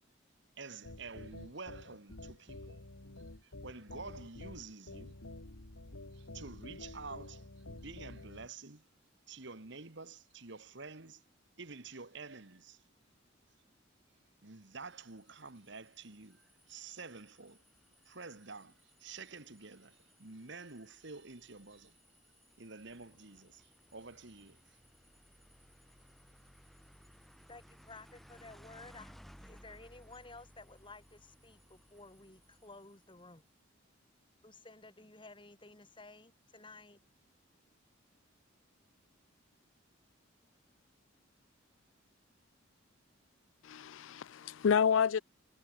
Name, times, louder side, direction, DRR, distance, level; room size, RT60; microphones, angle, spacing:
voice 1, 0.6-2.8 3.4-5.2 6.1-8.9 9.3-11.2 11.6-12.8 14.4-17.6 18.1-22.0 22.6-24.8, right 4 dB, 60° right, 1.7 m, -49 dB
sound 1, 0.8-8.5, left 2 dB, 90° left, 2.4 m, -49 dB
sound 2, 14.8-33.3, equal, ahead, 3.3 m, -62 dB
voice 2, 27.5-33.5 34.4-37.0, left 3 dB, 25° left, 3.1 m, -54 dB
voice 3, 43.6-45.2, left 7 dB, 70° left, 0.4 m, -29 dB
head